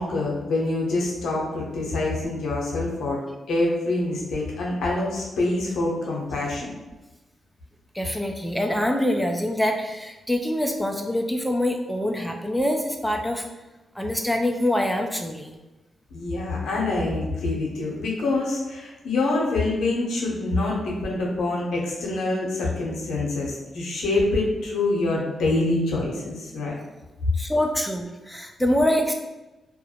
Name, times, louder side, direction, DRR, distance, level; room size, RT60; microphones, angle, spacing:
voice 1, 0.0-3.2 3.5-6.7 16.1-26.7, left 2 dB, 80° left, -3 dB, 0.7 m, -25 dB
voice 2, 7.9-13.4 14.0-15.6 27.3-29.1, left 1 dB, 5° left, 2 dB, 0.4 m, -25 dB
2.3 x 2.1 x 2.8 m, 1.1 s
supercardioid pair, 50°, 0 cm